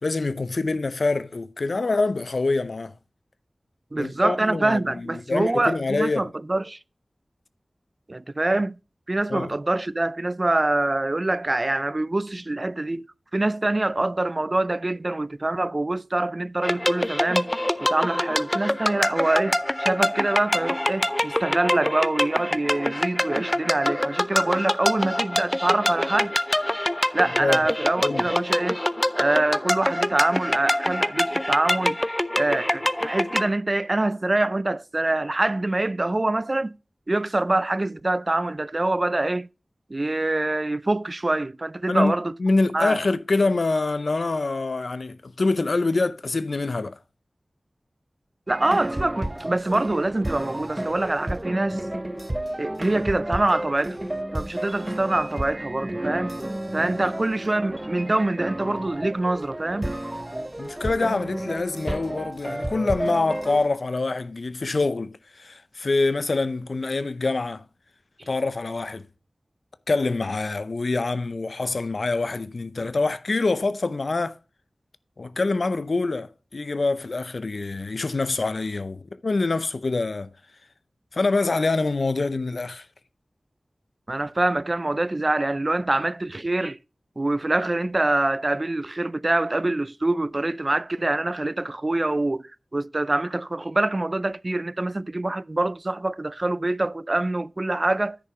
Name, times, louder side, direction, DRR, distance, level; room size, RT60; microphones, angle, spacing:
voice 1, 0.0-3.0 4.0-6.3 9.3-9.5 27.4-27.6 28.0-28.3 41.9-42.1 42.4-47.0 56.8-56.9 60.6-67.6 68.3-69.1 69.9-74.3 75.2-80.3 81.1-82.9, left 3 dB, 75° left, 0.6 m, -25 dB
voice 2, 3.9-6.8 8.1-8.8 9.1-13.1 13.3-17.5 17.8-26.4 27.1-28.8 29.2-32.0 32.4-36.7 37.1-39.5 39.9-42.4 42.7-43.0 48.5-51.8 52.6-54.0 54.3-56.4 56.7-59.9 68.2-68.3 84.1-86.8 87.2-98.2, right 2 dB, 45° right, 0.4 m, -25 dB
sound 1, 16.6-33.5, left 1 dB, 20° left, 0.5 m, -25 dB
sound 2, 48.5-63.7, right 1 dB, 25° right, 0.8 m, -32 dB
10.0 x 5.5 x 4.9 m
wide cardioid pair, 45°, 0 cm